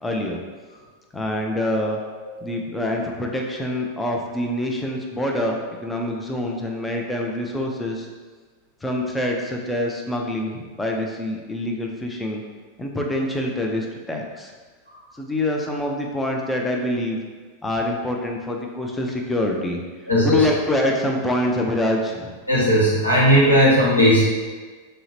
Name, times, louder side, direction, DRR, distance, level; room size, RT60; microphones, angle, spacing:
voice 1, 0.0-0.4 1.1-2.0 2.4-8.1 8.8-12.4 12.8-14.5 15.2-17.2 17.6-19.8 20.2-22.3, left 1 dB, 10° left, 0 dB, 0.4 m, -25 dB
voice 2, 20.1-20.5 22.5-24.2, equal, 85° left, -8 dB, 0.9 m, -17 dB
2.7 x 2.0 x 3.0 m, 1.4 s
figure-of-eight pair, 90°, 0 cm